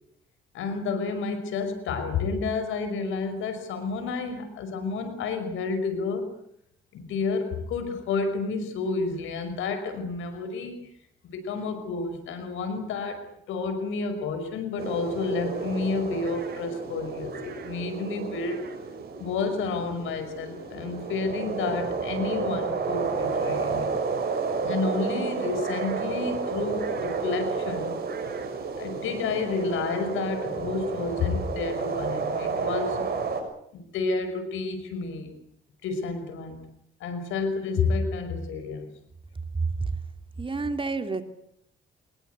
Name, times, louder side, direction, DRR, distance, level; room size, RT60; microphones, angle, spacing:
voice 1, 0.5-6.3 6.9-10.9 11.2-18.6 19.2-24.0 24.6-28.0 28.8-33.1 33.7-35.3 35.8-36.6 37.0-38.9, left 4 dB, 85° left, 9 dB, 5.6 m, -30 dB
sound 1, 14.8-33.4, right 4 dB, 55° right, 6.5 m, -31 dB
voice 2, 40.4-41.2, right 3 dB, 25° right, 8 dB, 2.8 m, -29 dB
24.5 x 21.0 x 8.2 m, 0.72 s
cardioid pair, 90°, 20 cm